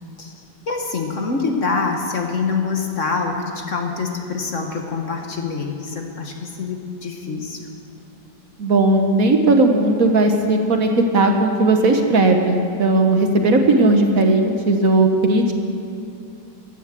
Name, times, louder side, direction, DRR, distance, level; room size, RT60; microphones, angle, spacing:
voice 1, 0.7-7.6, left 4 dB, 45° left, 3 dB, 1.5 m, -25 dB
voice 2, 8.6-15.5, right 2 dB, 55° right, 4 dB, 1.3 m, -16 dB
15.0 x 10.5 x 7.5 m, 2.5 s
omnidirectional pair, 1.9 m